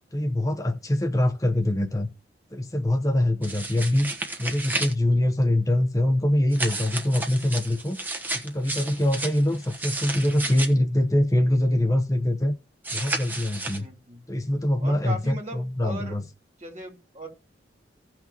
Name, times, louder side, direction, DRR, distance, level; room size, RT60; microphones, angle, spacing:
voice 1, 0.1-2.1 2.5-4.1 4.4-8.0 8.3-12.5 12.9-13.9 14.3-16.2, left 1 dB, 20° left, 0.8 m, -24 dB
sound 1, 3.4-4.9 6.5-10.7 12.8-13.8, right 2 dB, 10° right, 1.2 m, -32 dB
voice 2, 13.7-14.2 14.8-16.2 16.6-17.3, right 1 dB, 35° right, 3.5 m, -38 dB
16.5 x 5.9 x 2.9 m
head